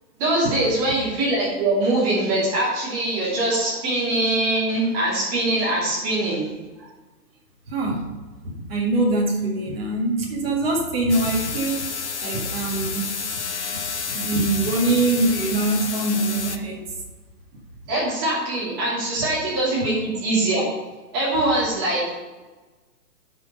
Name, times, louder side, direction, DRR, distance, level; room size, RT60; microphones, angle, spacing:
voice 1, 0.2-6.5 17.9-20.7 21.1-22.1, right 2 dB, 15° right, -8 dB, 2.7 m, -22 dB
voice 2, 7.7-8.1 8.4-11.9 12.2-13.1 13.7-16.9, right 2 dB, 35° right, -2 dB, 2.0 m, -23 dB
sound 1, 11.1-16.6, left 5 dB, 45° left, 0.5 m, -30 dB
9.6 x 6.3 x 5.4 m, 1.3 s
hypercardioid pair, 175°, 50 cm